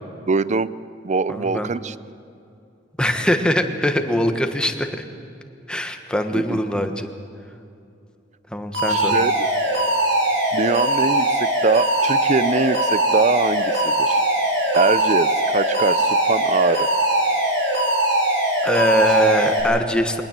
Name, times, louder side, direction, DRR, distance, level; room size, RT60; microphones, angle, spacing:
voice 1, 0.3-0.7 1.0-1.9 6.3-6.8 8.9-9.5 10.5-14.2 14.7-16.9, right 4 dB, 40° right, 17 dB, 0.5 m, -22 dB
voice 2, 1.3-1.7 3.0-5.0 5.7-7.1 8.5-9.2 18.6-20.2, equal, 5° left, 6 dB, 1.3 m, -22 dB
Alarm, 8.7-19.6, right 1 dB, 75° right, 5.6 m, -20 dB
22.0 x 19.0 x 7.5 m, 2.6 s
head